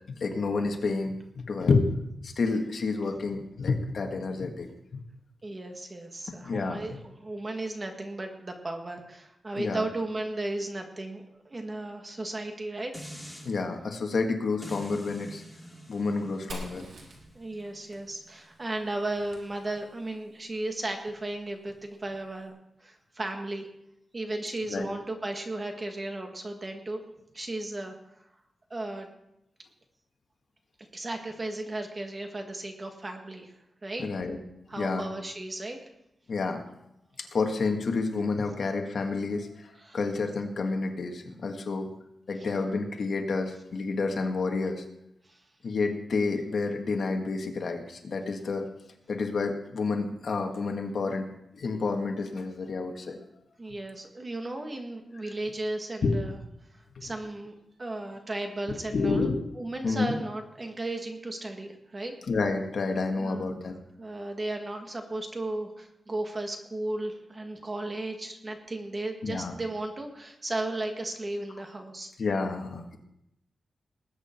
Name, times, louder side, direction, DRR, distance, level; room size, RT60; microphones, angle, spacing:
voice 1, 0.2-1.9 2.2-5.0 6.4-6.8 9.6-9.9 13.4-15.4 15.9-16.9 24.7-24.9 34.0-34.4 34.8-35.1 36.3-36.6 37.2-41.9 42.3-44.8 45.6-48.7 49.1-51.3 51.5-53.2 56.0-56.2 57.0-57.1 58.7-59.4 59.8-60.1 62.3-63.8 69.2-69.5 72.2-73.0, left 4 dB, 60° left, 3 dB, 1.8 m, -29 dB
voice 2, 5.4-13.1 16.1-16.4 17.3-22.5 22.8-23.7 24.1-27.0 27.3-27.9 28.7-29.1 30.9-33.5 33.8-34.0 34.7-35.8 39.8-40.0 42.4-42.5 45.3-45.4 53.6-56.4 57.0-59.3 59.6-62.1 63.2-63.7 64.0-72.1, right 2 dB, 25° right, 4 dB, 1.7 m, -35 dB
sound 1, 12.9-13.5 14.6-19.8 20.2-20.3, equal, 5° right, 3.0 m, -47 dB
Fire, 16.5-20.2, right 1 dB, 80° right, 3.6 m, -47 dB
20.0 x 8.8 x 4.5 m, 0.82 s
wide cardioid pair, 140°, 0 cm